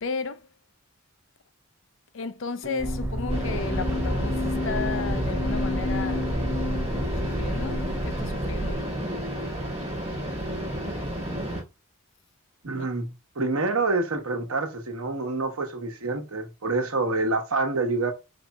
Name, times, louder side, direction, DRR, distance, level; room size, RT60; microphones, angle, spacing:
voice 1, 0.0-0.5 2.1-6.4 7.1-8.9 12.7-12.9, left 4 dB, 60° left, 0.5 m, -34 dB
sound 1, 2.6-8.3, left 2 dB, 85° left, 1.4 m, -32 dB
sound 2, 2.8-8.8, right 1 dB, 10° right, 0.3 m, -31 dB
sound 3, 3.3-11.6, equal, 30° right, 2.0 m, -32 dB
voice 2, 12.6-13.1 13.4-18.1, right 3 dB, 85° right, 1.1 m, -27 dB
4.6 x 4.0 x 2.3 m
head